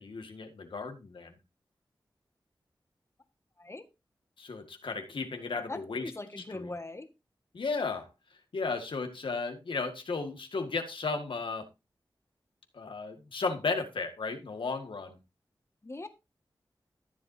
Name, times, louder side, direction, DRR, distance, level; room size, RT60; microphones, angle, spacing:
voice 1, 0.0-1.4 4.4-6.1 6.5-6.7 7.5-8.1 8.5-11.7 12.7-15.2, left 4 dB, 85° left, 1.8 m, -34 dB
voice 2, 5.7-7.1 15.8-16.1, left 2 dB, 30° left, 1.7 m, -40 dB
14.0 x 7.6 x 2.7 m
wide cardioid pair, 65°, 8 cm